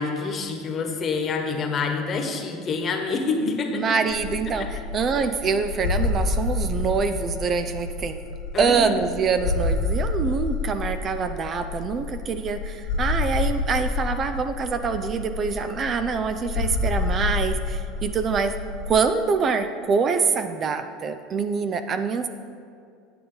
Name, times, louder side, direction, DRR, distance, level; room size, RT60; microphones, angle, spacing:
voice 1, 0.0-3.8 4.6-4.7 8.5-8.9, left 4 dB, 35° left, 4 dB, 1.3 m, -27 dB
voice 2, 3.7-8.2 8.6-18.6 18.9-22.3, right 5 dB, 35° right, 9 dB, 0.5 m, -25 dB
sound 1, 4.1-18.9, left 3 dB, 80° left, 1.5 m, -28 dB
9.2 x 8.5 x 3.9 m, 2.3 s
supercardioid pair, 115°, 0 cm